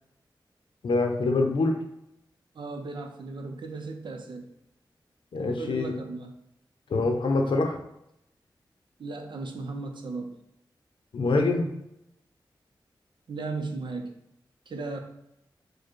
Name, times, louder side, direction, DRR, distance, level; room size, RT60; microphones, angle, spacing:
voice 1, 0.8-1.8 5.3-5.9 6.9-7.8 11.1-11.7, left 3 dB, 80° left, 4 dB, 0.6 m, -25 dB
voice 2, 2.5-4.5 5.4-6.3 9.0-10.3 13.3-14.1 14.7-15.0, right 3 dB, 70° right, 4 dB, 0.6 m, -36 dB
4.7 x 2.2 x 4.6 m, 0.82 s
wide cardioid pair, 80°, 8 cm